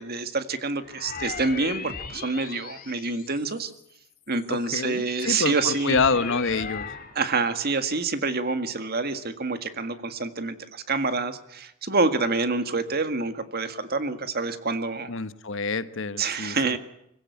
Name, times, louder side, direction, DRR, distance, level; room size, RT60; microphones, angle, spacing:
voice 1, 0.0-1.8 2.2-3.7 4.3-6.0 7.2-9.9 10.2-10.5 10.9-11.3 11.9-15.1 16.2-16.8, right 3 dB, 50° right, 9 dB, 1.9 m, -26 dB
sound 1, 0.8-3.8 4.3-7.2, left 5 dB, 45° left, 1.9 m, -38 dB
voice 2, 4.5-6.9 15.1-16.8, left 4 dB, 60° left, 13 dB, 1.1 m, -27 dB
25.0 x 16.5 x 8.5 m, 0.79 s
head